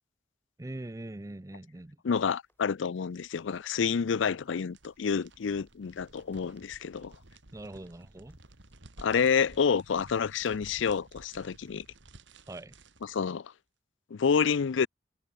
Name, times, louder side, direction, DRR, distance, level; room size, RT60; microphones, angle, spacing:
voice 1, 0.6-2.0 7.5-8.4 12.5-12.7, right 1 dB, 15° right, 0.5 m, -42 dB
voice 2, 2.0-7.1 9.0-11.8 13.0-13.5 14.1-14.9, left 6 dB, 85° left, 0.5 m, -28 dB
My pup Gabe eating a baby carrot, 2.3-11.8, left 2 dB, 10° left, 6.3 m, -72 dB
sound 1, 2.7-13.4, right 2 dB, 75° right, 2.7 m, -55 dB
head